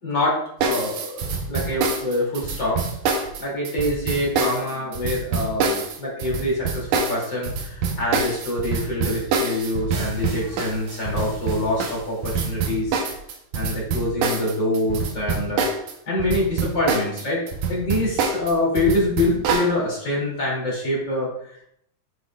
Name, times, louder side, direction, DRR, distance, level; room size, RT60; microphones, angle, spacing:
voice 1, 0.0-2.8 3.4-13.0 13.5-15.6 16.1-17.4 17.7-21.6, left 1 dB, 35° left, -4 dB, 3.0 m, -25 dB
sound 1, 0.6-15.9 16.2-19.7, right 4 dB, 70° right, 2.1 m, -25 dB
9.7 x 6.4 x 2.4 m, 0.71 s
omnidirectional pair, 3.9 m